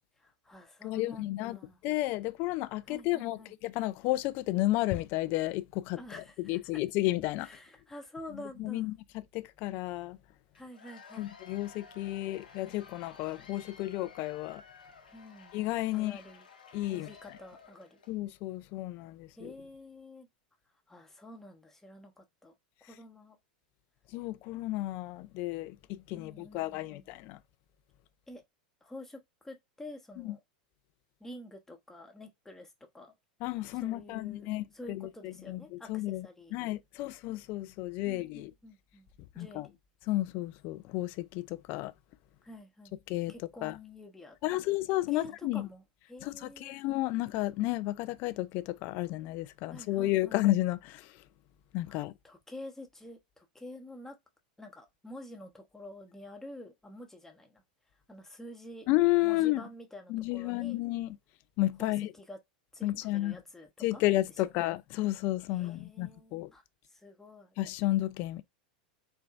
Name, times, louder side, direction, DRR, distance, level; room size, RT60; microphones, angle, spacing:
voice 1, 0.2-1.8 2.9-3.5 6.0-6.6 7.4-8.9 10.5-11.3 15.1-15.6 15.9-16.5 16.9-18.0 19.4-20.3 20.9-22.5 22.8-23.4 26.1-27.1 28.3-28.4 28.8-30.4 31.2-33.1 33.8-36.6 38.0-39.1 39.3-39.8 42.4-42.9 43.3-44.6 44.9-45.8 46.1-46.8 49.7-50.4 51.9-54.2 54.6-57.6 58.1-58.9 59.2-60.8 61.8-62.4 62.7-64.0 64.6-64.7 65.5-66.6 66.9-67.6, left 1 dB, 10° left, 0.9 m, -48 dB
voice 2, 0.8-7.5 8.3-10.2 11.2-14.6 15.5-16.2 16.7-17.4 18.1-19.5 24.1-27.4 30.2-30.4 33.4-38.5 39.4-39.7 40.1-41.9 43.1-43.3 43.6-43.8 44.4-45.7 46.2-51.1 51.7-52.1 58.9-59.6 60.1-61.2 61.6-62.1 62.8-63.4 63.8-66.5 67.6-68.4, left 17 dB, 50° left, 0.4 m, -32 dB
Cheering / Applause / Crowd, 10.5-18.2, left 5 dB, 85° left, 0.9 m, -54 dB
4.4 x 2.2 x 2.4 m
hypercardioid pair, 90°, 5 cm